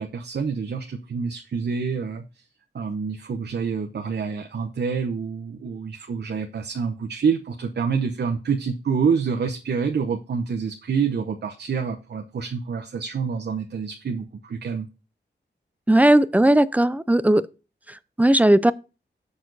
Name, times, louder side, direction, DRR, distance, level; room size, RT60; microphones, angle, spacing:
voice 1, 0.0-2.4 2.7-14.9, right 6 dB, 65° right, 0.9 m, -27 dB
voice 2, 15.9-17.4 18.2-18.7, right 1 dB, 10° right, 0.4 m, -17 dB
7.0 x 6.3 x 3.9 m
wide cardioid pair, 110°, 18 cm